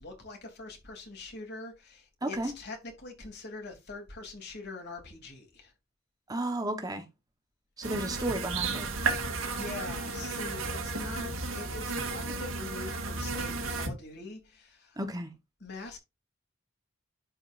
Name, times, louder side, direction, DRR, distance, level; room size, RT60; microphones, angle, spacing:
voice 1, 0.0-5.7 9.4-15.0 15.6-16.0, left 3 dB, 55° left, 3.5 m, -43 dB
voice 2, 2.2-2.5 6.3-7.0 7.8-8.9 15.0-15.3, right 1 dB, 20° right, 1.2 m, -33 dB
sound 1, 7.8-13.9, right 3 dB, 90° right, 2.1 m, -33 dB
11.5 x 5.4 x 2.6 m
head